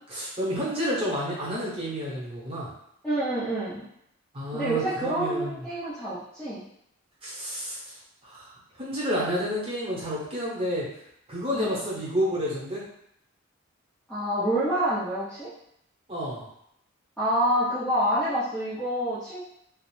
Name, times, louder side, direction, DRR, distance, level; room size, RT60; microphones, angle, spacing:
voice 1, 0.1-2.7 4.3-5.6 7.2-7.8 8.2-8.5 8.8-10.9 11.3-12.8 16.1-16.4, equal, 25° right, -7 dB, 0.8 m, -30 dB
voice 2, 3.0-3.8 4.5-6.6 11.5-11.8 14.1-15.5 17.2-19.4, right 1 dB, 5° left, -12 dB, 0.4 m, -27 dB
2.4 x 2.0 x 3.1 m, 0.74 s
head